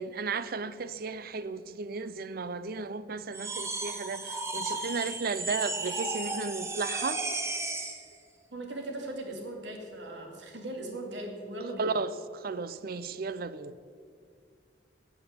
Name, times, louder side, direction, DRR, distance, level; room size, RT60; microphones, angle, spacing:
voice 1, 0.0-7.2 11.8-13.8, right 4 dB, 55° right, 14 dB, 0.6 m, -34 dB
sound 1, 3.3-8.0, right 2 dB, 15° right, 1.0 m, -34 dB
voice 2, 8.5-11.9, right 1 dB, 80° right, 2 dB, 2.4 m, -39 dB
9.7 x 8.1 x 8.5 m, 2.2 s
head